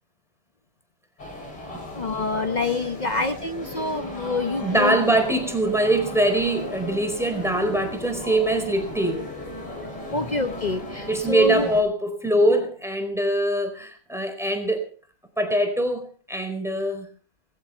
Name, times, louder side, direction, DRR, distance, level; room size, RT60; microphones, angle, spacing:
sound 1, 1.2-11.8, left 2 dB, 80° left, 7.8 m, -36 dB
voice 1, 1.9-5.0 9.8-11.7, left 3 dB, 65° left, 9 dB, 0.4 m, -27 dB
voice 2, 4.6-9.2 11.1-14.9 15.4-17.1, right 1 dB, ahead, 6 dB, 4.3 m, -23 dB
21.0 x 15.0 x 4.5 m, 0.40 s
omnidirectional pair, 2.3 m